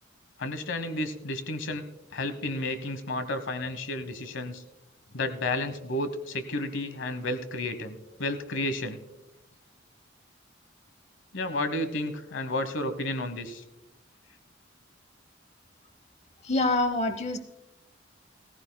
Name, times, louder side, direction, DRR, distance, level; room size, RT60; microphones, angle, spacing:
voice 1, 0.4-1.8 2.1-4.6 5.1-9.0 11.3-13.6, left 2 dB, 75° left, 11 dB, 1.0 m, -32 dB
voice 2, 16.4-17.4, left 2 dB, 35° left, 9 dB, 0.7 m, -26 dB
17.0 x 15.0 x 2.2 m, 0.96 s
head